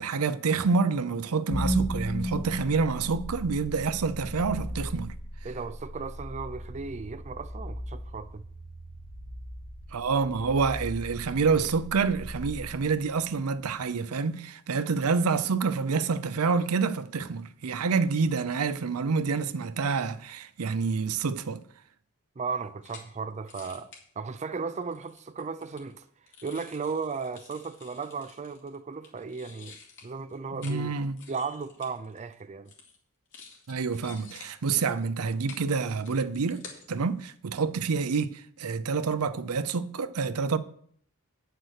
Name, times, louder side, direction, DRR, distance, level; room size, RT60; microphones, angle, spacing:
voice 1, 0.0-5.1 9.9-21.6 30.6-31.2 33.7-36.6 36.9-40.6, right 5 dB, 80° right, 0.6 m, -27 dB
sound 1, 1.5-13.6, equal, 40° left, 1.6 m, -36 dB
voice 2, 5.4-8.4 22.4-23.9 24.2-26.1 26.4-29.8 30.0-31.0 31.3-32.7, right 5 dB, 30° right, 0.4 m, -35 dB
sound 2, 22.6-23.1 23.5-24.0 24.8-28.8 29.0-30.8 31.0-32.4 32.7-33.0 33.3-36.9 37.2-37.3, left 5 dB, 60° left, 2.5 m, -50 dB
9.1 x 6.7 x 6.5 m
head